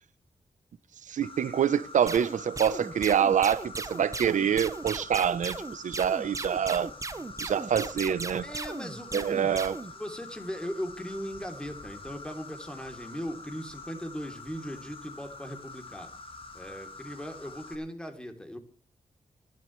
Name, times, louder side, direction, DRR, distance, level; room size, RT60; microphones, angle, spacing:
voice 1, 1.1-6.9 7.4-8.5 9.1-9.7, right 8 dB, 90° right, 0.8 m, -26 dB
Insect, 1.2-17.8, left 3 dB, 45° left, 2.8 m, -46 dB
sound 1, 2.1-9.9, right 3 dB, 25° right, 0.9 m, -37 dB
voice 2, 8.4-9.6 10.0-16.1 16.5-18.6, equal, 5° left, 3.1 m, -38 dB
27.5 x 11.0 x 3.2 m
wide cardioid pair, 115°, 13 cm